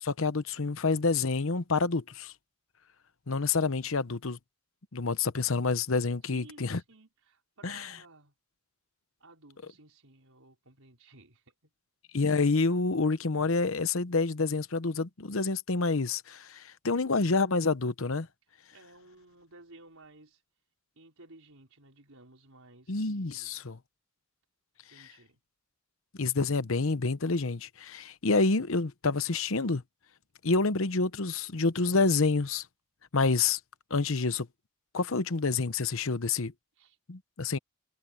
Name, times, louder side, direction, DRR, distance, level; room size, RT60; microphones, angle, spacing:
voice 1, 0.0-2.3 3.3-4.4 4.9-6.8 7.6-7.9 12.1-18.3 22.9-23.8 25.0-25.1 26.2-29.8 30.4-32.6 33.1-33.6 33.9-34.5 34.9-36.5 37.1-37.6, left 3 dB, 65° left, 0.9 m, -28 dB
voice 2, 6.2-8.3 9.2-11.7 18.7-20.4 20.9-23.6 24.9-25.4 36.8-37.0, right 2 dB, 75° right, 4.9 m, -56 dB
head